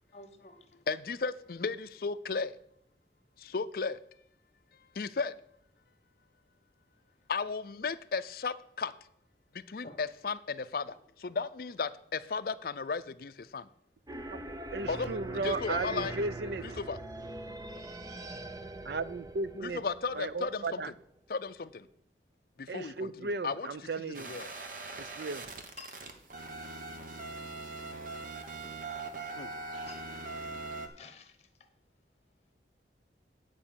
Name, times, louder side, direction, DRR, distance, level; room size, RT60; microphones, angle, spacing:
voice 1, 0.1-0.6 9.8-10.0 10.9-11.0 16.7-16.8 18.2-18.4 25.8-26.0 29.9-30.0 31.0-31.5, left 3 dB, 35° left, 1.1 m, -50 dB
voice 2, 0.9-2.5 3.4-4.0 4.9-5.3 7.3-8.9 9.5-13.7 14.9-16.2 16.6-17.0 19.6-20.8 21.3-21.9 22.6-23.7 24.0-24.5 29.4-29.5, left 4 dB, 55° left, 0.5 m, -35 dB
sound 1, 14.1-20.9, right 1 dB, 20° right, 0.6 m, -42 dB
voice 3, 14.7-16.8 18.8-19.8 20.1-20.9 22.7-24.3 25.0-25.5 29.7-29.9, right 3 dB, 65° right, 0.5 m, -35 dB
sound 2, 24.1-30.9, right 3 dB, 45° right, 1.2 m, -41 dB
9.5 x 5.4 x 7.0 m
head